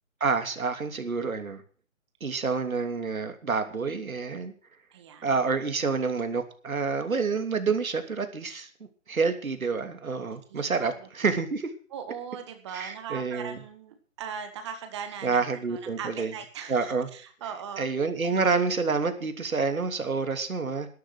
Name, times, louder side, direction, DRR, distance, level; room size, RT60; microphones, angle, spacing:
voice 1, 0.2-1.6 2.2-4.5 5.2-8.7 9.1-11.7 12.7-13.6 15.2-16.3 16.7-17.1 17.8-20.9, right 4 dB, 85° right, 8 dB, 3.1 m, -28 dB
voice 2, 4.9-5.4 10.3-11.1 11.9-15.4 15.7-17.9 18.2-18.5, right 7 dB, 20° right, 8 dB, 1.8 m, -40 dB
13.5 x 11.5 x 6.1 m, 0.42 s
hypercardioid pair, 165°, 41 cm